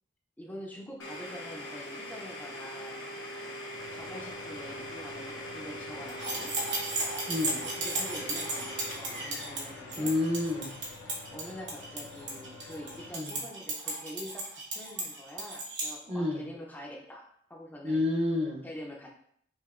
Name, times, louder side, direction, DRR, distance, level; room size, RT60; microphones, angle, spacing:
voice 1, 0.4-3.1 3.9-6.5 7.6-10.2 11.3-18.1 18.6-19.1, equal, 10° left, -1 dB, 0.4 m, -45 dB
Domestic sounds home sounds, 1.0-12.6, equal, 85° left, 0.8 m, -43 dB
sound 1, 3.7-13.1, left 4 dB, 70° left, 0.4 m, -49 dB
sound 2, 6.1-15.9, right 2 dB, 80° right, 1.0 m, -35 dB
voice 2, 7.3-7.6 10.0-10.7 13.1-13.4 16.1-16.5 17.8-18.6, left 2 dB, 35° right, -1 dB, 0.6 m, -29 dB
5.4 x 2.6 x 2.4 m, 0.66 s
head